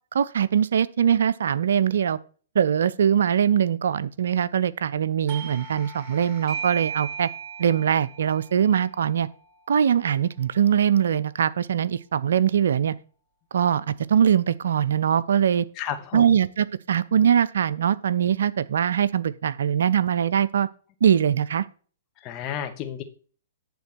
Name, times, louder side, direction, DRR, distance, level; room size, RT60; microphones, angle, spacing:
voice 1, 0.1-2.2 2.5-7.3 7.6-9.3 9.7-12.9 13.5-15.7 16.1-20.7 21.0-21.7, right 8 dB, 70° right, 0.5 m, -22 dB
Doorbell, 5.3-10.6, right 7 dB, 45° right, 1.0 m, -38 dB
voice 2, 15.8-16.2 22.2-23.0, left 9 dB, 30° left, 1.3 m, -32 dB
10.5 x 3.7 x 6.1 m
hypercardioid pair, 120°, 0 cm